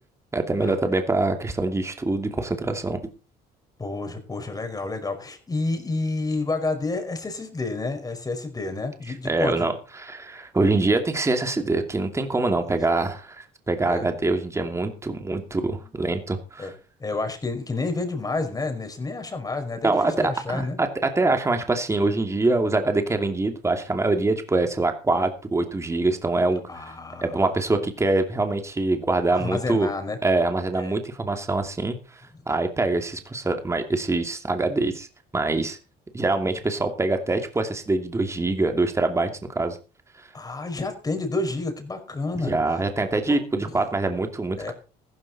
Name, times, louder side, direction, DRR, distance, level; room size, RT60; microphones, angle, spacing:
voice 1, 0.3-3.0 9.2-16.7 19.8-26.8 27.2-29.9 30.2-32.2 32.5-35.1 35.3-35.8 36.1-39.3 39.5-39.8 42.3-44.7, right 2 dB, 15° right, 6 dB, 2.6 m, -24 dB
voice 2, 3.8-9.7 12.6-12.8 13.8-14.1 15.8-15.9 16.6-16.7 17.0-20.8 26.7-27.4 29.3-30.2 30.8-30.9 40.3-42.5 43.3-43.8 44.6-44.7, left 3 dB, 20° left, 6 dB, 5.0 m, -30 dB
15.0 x 13.5 x 4.2 m, 0.34 s
cardioid pair, 110°, 17 cm